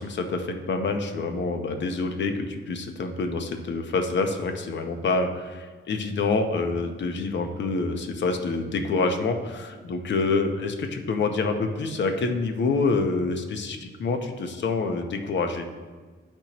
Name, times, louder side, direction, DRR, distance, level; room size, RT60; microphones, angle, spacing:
voice 1, 0.0-15.7, left 3 dB, 60° left, 6 dB, 0.8 m, -27 dB
11.5 x 4.4 x 3.0 m, 1.4 s
cardioid pair, 120°, 21 cm